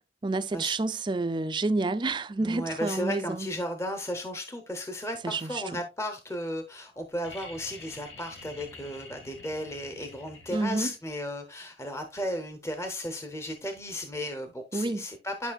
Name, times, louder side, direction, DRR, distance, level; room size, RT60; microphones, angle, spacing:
voice 1, 0.2-3.5 5.2-5.8 10.5-10.9 14.7-15.1, right 2 dB, 25° right, 0.4 m, -29 dB
voice 2, 2.4-15.5, equal, 15° left, 0.8 m, -35 dB
sound 1, 7.2-11.0 12.7-12.8, left 3 dB, 80° left, 2.2 m, -48 dB
11.0 x 5.4 x 2.3 m
head